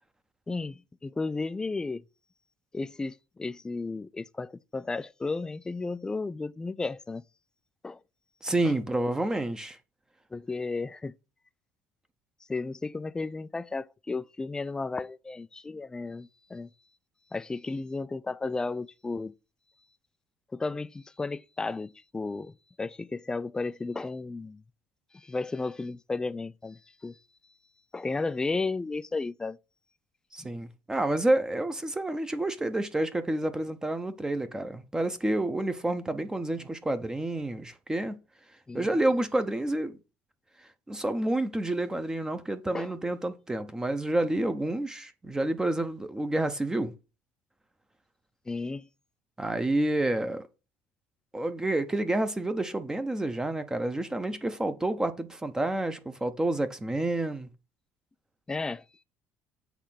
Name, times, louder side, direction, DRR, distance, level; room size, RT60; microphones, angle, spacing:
voice 1, 0.5-2.0 2.7-7.2 7.8-8.0 10.3-11.1 12.5-16.7 17.3-19.3 20.5-24.6 25.1-27.2 27.9-29.6 30.4-30.5 38.7-39.0 42.7-42.9 48.5-48.9 58.5-58.8, left 3 dB, 10° left, 0.3 m, -33 dB
voice 2, 8.4-9.8 30.3-38.2 38.7-40.0 40.9-46.9 49.4-50.4 51.3-57.5, right 1 dB, 10° right, 0.7 m, -29 dB
8.1 x 3.3 x 5.8 m
cardioid pair, 120°, 6 cm